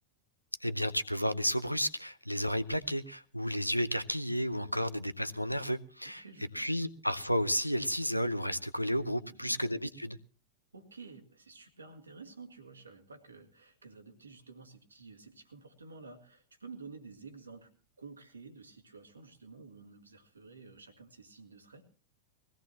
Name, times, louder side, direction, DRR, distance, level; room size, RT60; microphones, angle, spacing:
voice 1, 0.6-6.2 6.5-10.2, equal, 90° left, 0.8 m, -32 dB
voice 2, 6.0-6.7 9.2-9.6 10.7-17.7 18.0-21.8, right 4 dB, 75° right, 2.0 m, -51 dB
21.0 x 16.5 x 2.9 m
figure-of-eight pair, 90°, 0 cm